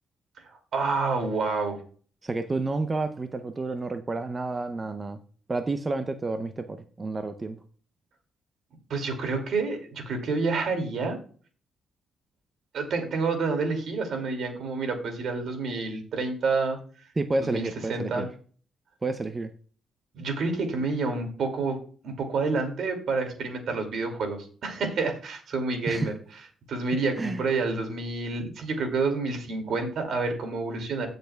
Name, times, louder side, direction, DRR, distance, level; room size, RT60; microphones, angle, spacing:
voice 1, 0.7-1.8 8.9-11.2 12.7-16.8 17.5-18.3 20.1-21.8 22.0-26.1 26.7-31.1, right 3 dB, 65° right, 5 dB, 2.4 m, -28 dB
voice 2, 2.2-5.2 5.5-7.6 17.2-18.3 19.0-19.5 25.9-26.1 27.2-27.4, right 3 dB, 25° right, 8 dB, 0.6 m, -30 dB
16.0 x 6.6 x 2.3 m, 0.43 s
cardioid pair, 90°, 0 cm